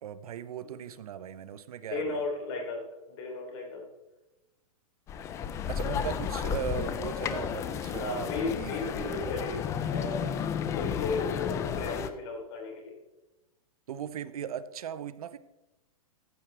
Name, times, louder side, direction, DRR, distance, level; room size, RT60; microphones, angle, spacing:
voice 1, 0.0-2.2 5.7-9.5 13.9-15.4, right 9 dB, 75° right, 15 dB, 0.7 m, -38 dB
voice 2, 1.9-3.9 8.0-10.3 10.7-13.0, left 3 dB, 45° left, 1 dB, 3.3 m, -35 dB
sound 1, 5.1-12.1, left 8 dB, 15° left, 0.4 m, -32 dB
14.0 x 7.3 x 3.4 m, 0.99 s
hypercardioid pair, 150°, 19 cm